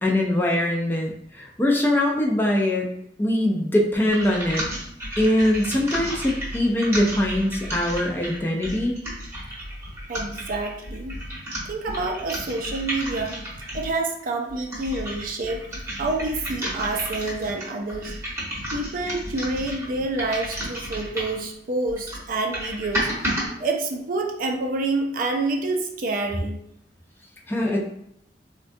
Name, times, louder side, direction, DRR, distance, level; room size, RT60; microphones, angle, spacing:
voice 1, 0.0-2.9 3.2-4.6 5.2-9.0 27.5-27.8, left 1 dB, 10° left, -1 dB, 0.4 m, -22 dB
sound 1, 4.1-13.9 14.5-21.5 21.9-23.5, equal, 15° right, 0.9 m, -32 dB
voice 2, 10.1-11.2 11.7-13.4 13.7-15.6 15.9-18.1 18.7-23.1 23.6-26.6, right 2 dB, 50° right, 2 dB, 0.4 m, -27 dB
3.6 x 2.2 x 2.5 m, 0.73 s
head